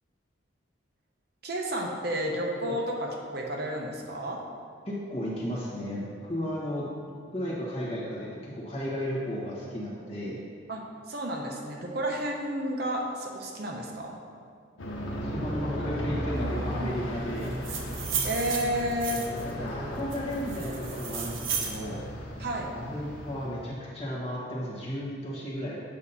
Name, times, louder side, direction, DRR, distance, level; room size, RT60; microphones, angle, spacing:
voice 1, 1.4-4.4 10.7-14.2 18.2-19.2 22.4-22.7, right 1 dB, 50° right, 0 dB, 0.8 m, -31 dB
voice 2, 4.9-6.9 7.3-10.4 15.2-17.5 19.3-22.0 22.7-25.8, equal, 30° left, -6 dB, 1.4 m, -34 dB
Aircraft, 14.8-23.8, equal, 80° left, 1.0 m, -36 dB
sound 1, 17.4-19.5 20.1-21.8, right 6 dB, 85° right, 0.8 m, -34 dB
8.4 x 2.8 x 5.5 m, 2.2 s
head